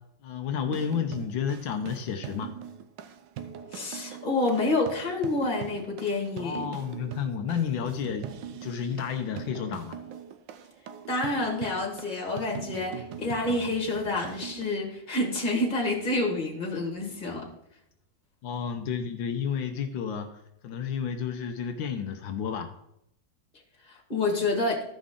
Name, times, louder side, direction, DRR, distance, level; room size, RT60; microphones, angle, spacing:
voice 1, 0.2-2.5 6.4-10.0 18.4-22.7, left 7 dB, 80° left, 5 dB, 1.5 m, -31 dB
sound 1, 0.6-14.8, right 9 dB, 70° right, 1.3 m, -42 dB
voice 2, 3.7-6.7 11.1-17.5 23.8-24.8, left 2 dB, 25° left, 0 dB, 1.9 m, -28 dB
14.5 x 5.2 x 3.7 m, 0.77 s
omnidirectional pair, 2.1 m